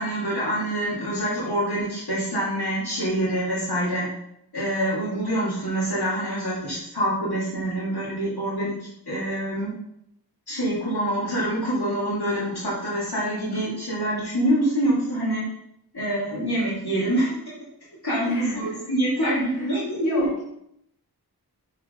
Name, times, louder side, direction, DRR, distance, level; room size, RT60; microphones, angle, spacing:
voice 1, 0.0-4.1 4.5-9.7 10.5-15.4 15.9-17.5 18.0-20.3, right 1 dB, 70° left, -7 dB, 2.6 m, -26 dB
voice 2, 18.2-20.4, left 3 dB, 45° left, -7 dB, 2.8 m, -36 dB
6.4 x 4.6 x 5.2 m, 0.76 s
wide cardioid pair, 65°, 39 cm